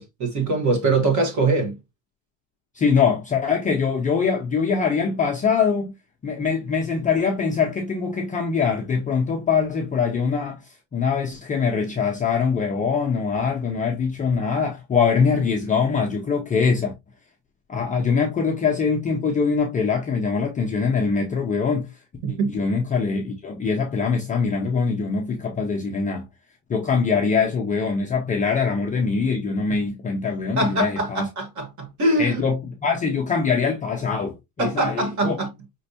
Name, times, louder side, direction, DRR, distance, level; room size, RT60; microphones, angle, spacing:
voice 1, 0.0-1.8 22.2-22.5 30.6-32.4 34.6-35.5, right 3 dB, 40° right, 1.6 m, -23 dB
voice 2, 2.7-5.9 6.2-16.9 17.7-21.9 22.3-26.2 26.7-31.2 32.2-35.3, left 5 dB, 20° left, 0.5 m, -23 dB
5.2 x 3.2 x 2.7 m
cardioid pair, 165°, 46 cm